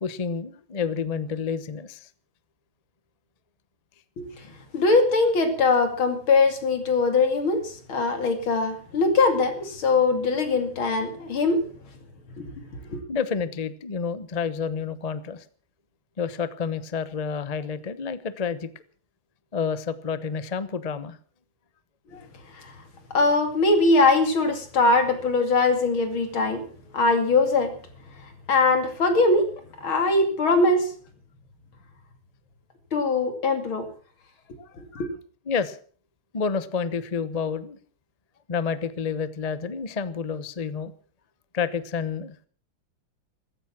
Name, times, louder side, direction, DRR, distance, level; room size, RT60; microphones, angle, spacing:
voice 1, 0.0-2.1 13.1-15.4 16.2-18.7 19.5-21.2 22.1-22.3 34.6-34.8 35.5-35.8 36.3-37.8 38.5-40.9 41.5-42.4, left 6 dB, 35° left, 0.6 m, -29 dB
voice 2, 4.7-11.6 12.4-12.5 12.9-13.0 22.5-22.7 23.1-26.7 26.9-27.7 28.5-29.5 29.8-30.9 32.9-33.9 34.8-35.1, left 3 dB, 75° left, 3.3 m, -21 dB
15.0 x 15.0 x 6.0 m
omnidirectional pair, 2.3 m